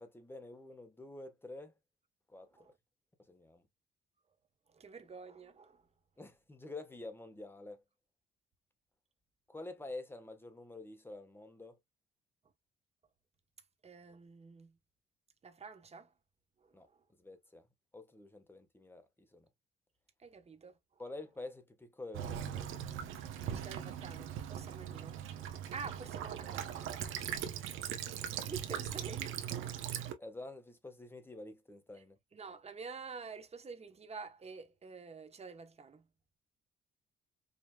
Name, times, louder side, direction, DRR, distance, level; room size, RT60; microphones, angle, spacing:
voice 1, 0.0-1.7 2.3-2.5 3.3-3.6 6.2-7.8 9.5-11.8 16.7-16.9 17.2-17.7 17.9-19.5 21.0-22.6 30.2-32.2, left 2 dB, 10° left, 1.1 m, -48 dB
voice 2, 4.7-5.8 13.8-14.8 15.4-16.1 16.6-17.0 20.2-20.8 23.5-25.2 25.7-26.7 28.4-29.5 31.9-32.0 32.3-36.1, right 5 dB, 30° right, 1.0 m, -48 dB
Child speech kid speaking / Bird vocalization bird call bird song / Stream, 22.1-30.1, right 9 dB, 90° right, 0.9 m, -40 dB
5.1 x 2.8 x 2.2 m
cardioid pair, 90°, 20 cm